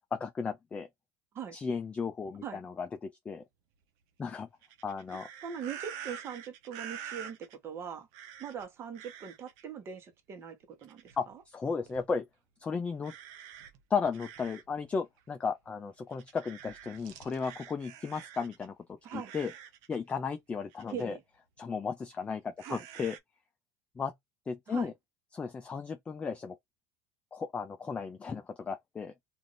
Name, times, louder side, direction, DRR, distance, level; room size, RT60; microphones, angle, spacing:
voice 1, 0.1-0.9 1.5-3.4 4.2-4.5 4.8-5.3 11.2-12.3 12.6-13.1 13.9-19.5 19.9-21.2 21.6-23.2 24.0-24.1 24.5-24.9 25.3-26.6 27.3-29.1, left 5 dB, 15° left, 0.3 m, -35 dB
sound 1, 4.6-7.6 8.1-8.6 8.9-9.6 10.8-11.3 11.9-12.1 13.0-14.8 15.2-15.3 16.1-18.7 19.0-20.0 20.7-21.0 22.6-23.2, right 9 dB, 65° right, 0.7 m, -47 dB
voice 2, 5.4-8.1 8.4-11.3 19.0-19.3 20.9-21.2 22.6-22.8 24.7-24.9, right 7 dB, 35° right, 1.0 m, -41 dB
2.5 x 2.5 x 3.2 m
supercardioid pair, 135°, 8 cm